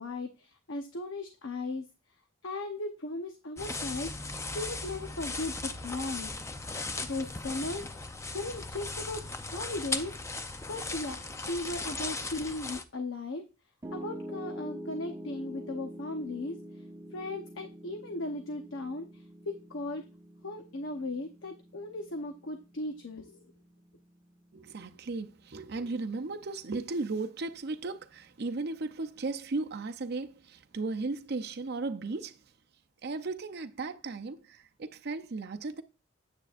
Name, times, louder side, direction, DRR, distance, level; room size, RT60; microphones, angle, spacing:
voice 1, 0.0-1.9 2.4-4.1 4.5-6.3 7.1-8.0 8.3-9.2 9.5-10.1 10.7-13.4 13.9-16.6 17.1-20.0 20.4-23.5, left 2 dB, 70° left, 0.9 m, -37 dB
sound 1, 3.6-12.8, left 3 dB, 15° left, 0.5 m, -37 dB
Piano, 13.8-26.0, equal, 20° right, 1.0 m, -46 dB
voice 2, 24.5-32.4 33.0-35.8, right 3 dB, 55° right, 0.6 m, -36 dB
9.1 x 8.2 x 2.5 m
head